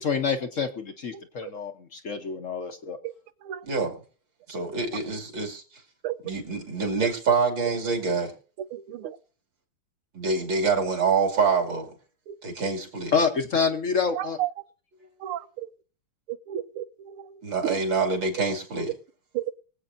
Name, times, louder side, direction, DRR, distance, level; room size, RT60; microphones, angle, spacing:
voice 1, 0.0-3.0 13.1-14.4, left 5 dB, 50° left, 7 dB, 1.0 m, -27 dB
voice 2, 3.6-3.9 4.5-5.6 6.2-8.3 10.1-11.9 12.4-13.1 17.4-18.9, right 4 dB, 60° right, 1 dB, 3.2 m, -26 dB
voice 3, 8.7-9.2 12.3-12.4 14.2-14.5 15.2-15.7 16.3-17.3 17.6-17.8 19.3-19.5, right 12 dB, 85° right, 14 dB, 1.6 m, -33 dB
24.0 x 8.0 x 2.6 m, 0.39 s
omnidirectional pair, 2.3 m